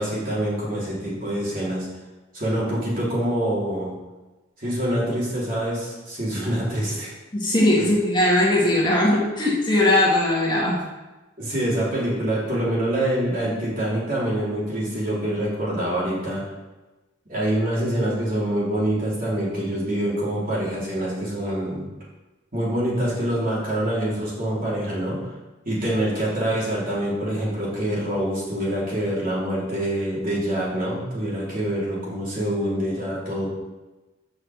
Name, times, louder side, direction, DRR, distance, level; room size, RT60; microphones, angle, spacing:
voice 1, 0.0-1.9 2.3-3.9 4.6-7.1 11.4-16.4 17.3-21.9 22.5-25.2 25.6-33.5, right 1 dB, 45° right, -7 dB, 3.4 m, -25 dB
voice 2, 7.3-10.8, left 1 dB, 25° left, -4 dB, 1.7 m, -19 dB
6.3 x 5.7 x 6.9 m, 1.1 s
head